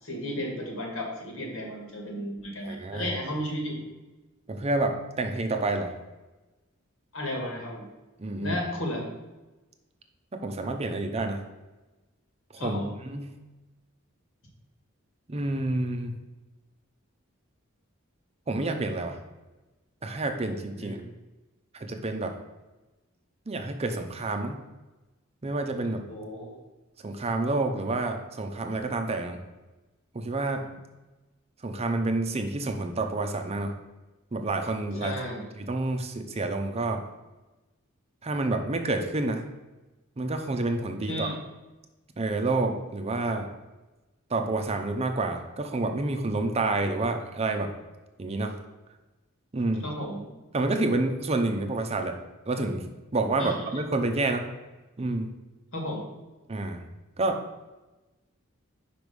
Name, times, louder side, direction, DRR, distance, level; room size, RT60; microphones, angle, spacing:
voice 1, 0.0-3.8 7.1-7.9 8.4-9.1 12.5-12.9 20.8-21.1 26.1-26.6 35.0-35.4 41.1-41.4 49.8-50.3 53.4-53.6 55.7-56.1, left 1 dB, 75° left, 0 dB, 1.8 m, -34 dB
voice 2, 2.6-3.1 4.5-5.9 8.2-8.6 10.3-11.4 12.5-13.3 15.3-16.1 18.5-19.2 20.0-21.0 21.7-22.3 23.5-24.5 25.4-26.0 27.0-29.4 30.1-30.7 31.6-33.8 34.3-35.1 35.6-37.0 38.2-39.4 40.2-41.3 42.2-43.5 44.3-47.7 48.2-48.5 49.5-49.8 50.5-52.2 52.5-52.8 53.1-54.5 55.0-55.3 56.5-56.8 57.2-57.4, right 2 dB, 30° right, 5 dB, 0.6 m, -28 dB
5.1 x 4.8 x 5.2 m, 1.1 s
head